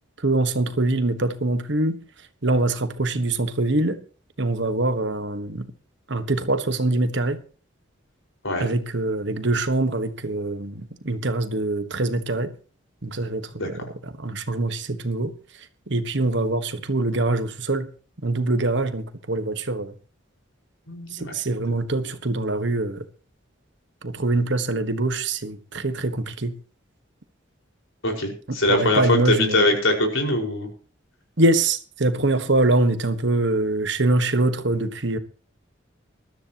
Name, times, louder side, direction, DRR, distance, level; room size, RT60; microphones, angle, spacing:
voice 1, 0.2-2.0 2.4-4.0 4.4-5.7 6.1-7.4 8.6-12.5 13.0-17.9 18.2-19.9 21.1-23.1 24.0-26.5 28.5-29.7 31.4-35.2, right 2 dB, 60° right, 1.4 m, -24 dB
voice 2, 20.9-21.3 28.0-30.7, left 1 dB, 90° left, 5.2 m, -22 dB
20.5 x 13.5 x 3.0 m
head